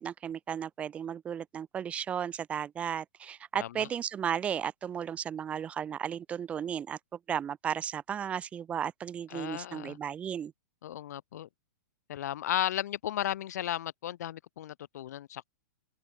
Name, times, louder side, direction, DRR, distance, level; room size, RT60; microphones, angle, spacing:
voice 1, 0.0-7.0 7.3-10.5, right 8 dB, 10° right, 1.0 m, -34 dB
voice 2, 9.3-10.0 10.8-11.5 12.1-15.4, left 12 dB, 60° left, 0.5 m, -35 dB
open air
hypercardioid pair, 170°, 10 cm